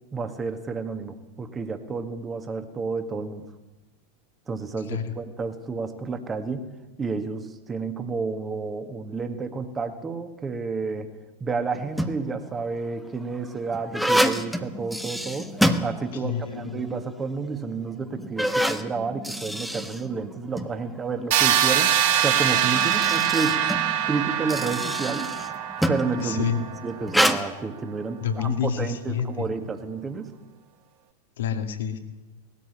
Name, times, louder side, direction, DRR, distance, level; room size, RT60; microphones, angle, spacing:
voice 1, 0.1-3.4 4.5-6.7 7.0-11.1 11.4-15.5 15.8-23.6 24.1-25.3 25.9-26.5 26.8-30.3, right 4 dB, 20° right, 7 dB, 2.0 m, -30 dB
sound 1, 11.7-12.4 13.1-16.5 16.8-16.9 17.6-17.7 18.2-20.7 21.9-26.2 27.1-27.4, equal, ahead, 1.3 m, -27 dB
voice 2, 16.1-16.8 26.2-26.7 28.2-29.5 31.4-32.0, left 8 dB, 60° left, 7 dB, 2.2 m, -28 dB
sound 2, 21.3-27.1, right 10 dB, 50° right, 2.6 m, -24 dB
19.5 x 14.0 x 10.0 m, 1.1 s
figure-of-eight pair, 90°, 0 cm